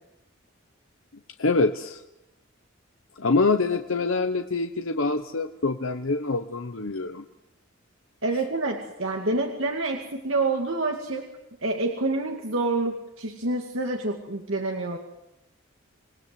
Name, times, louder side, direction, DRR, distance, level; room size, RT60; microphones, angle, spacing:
voice 1, 1.4-2.0 3.2-7.2, left 3 dB, 75° left, 7 dB, 1.1 m, -25 dB
voice 2, 8.2-11.3 11.6-15.0, right 2 dB, 70° right, 2 dB, 2.2 m, -27 dB
27.5 x 19.0 x 7.8 m, 0.91 s
head